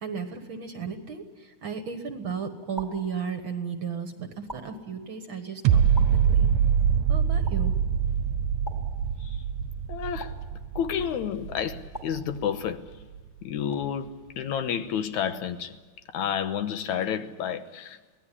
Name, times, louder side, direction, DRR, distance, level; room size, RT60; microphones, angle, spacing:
voice 1, 0.0-6.5 7.1-7.7, right 6 dB, 50° right, 1.7 m, -35 dB
sound 1, 1.6-2.1 2.8-3.7 4.5-5.4 6.0-6.8 7.5-8.1 8.7-9.6 10.2-11.1 11.9-12.9 13.7-14.3, right 1 dB, 5° left, 2.4 m, -45 dB
sound 2, 5.6-12.7 13.1-13.2, right 8 dB, 75° right, 2.1 m, -24 dB
voice 2, 9.9-10.3 10.8-12.8 13.4-15.7 16.1-18.2, left 8 dB, 75° left, 2.4 m, -30 dB
23.5 x 18.0 x 9.9 m
omnidirectional pair, 3.5 m